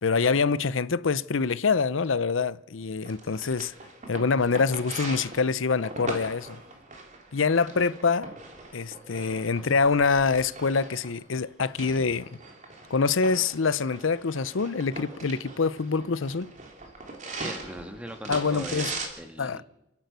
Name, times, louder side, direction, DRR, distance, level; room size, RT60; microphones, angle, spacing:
voice 1, 0.0-3.7 4.1-6.6 7.3-8.3 8.7-12.3 12.9-16.5 18.3-18.9 19.4-19.6, left 4 dB, 80° left, 0.7 m, -25 dB
sound 1, 3.0-19.1, right 3 dB, 40° right, 3.4 m, -41 dB
voice 2, 17.4-19.6, equal, 5° right, 1.8 m, -40 dB
29.5 x 11.0 x 8.2 m
head